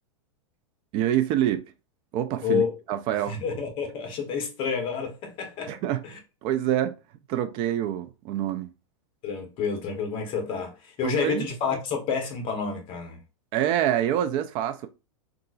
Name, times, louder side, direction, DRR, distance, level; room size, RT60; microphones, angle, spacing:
voice 1, 0.9-1.6 2.1-2.6 2.9-3.4 5.7-6.0 6.4-7.0 7.3-8.7 11.0-11.5 13.5-14.9, right 11 dB, 30° right, 0.3 m, -26 dB
voice 2, 2.4-2.7 3.3-5.7 6.0-6.2 9.2-13.2, left 6 dB, 30° left, 0.9 m, -29 dB
3.8 x 2.4 x 2.3 m
supercardioid pair, 150°, 17 cm